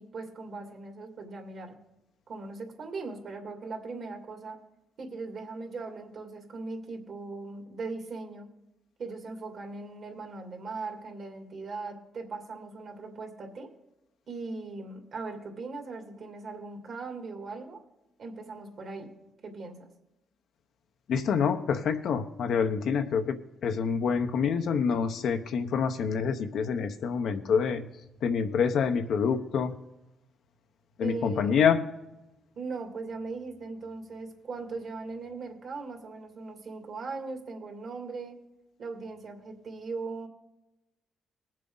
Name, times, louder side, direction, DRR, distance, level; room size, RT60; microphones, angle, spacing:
voice 1, 0.0-1.8 2.3-4.6 5.0-8.5 9.0-13.7 14.3-17.8 18.2-19.2 19.4-19.9 31.0-31.5 32.6-38.4 38.8-40.3, right 3 dB, 55° right, 2 dB, 2.5 m, -39 dB
voice 2, 21.1-23.4 23.6-27.8 28.2-29.7 31.0-31.8, left 6 dB, 70° left, 7 dB, 0.9 m, -26 dB
19.5 x 7.5 x 3.9 m, 0.95 s
cardioid pair, 90°, 0 cm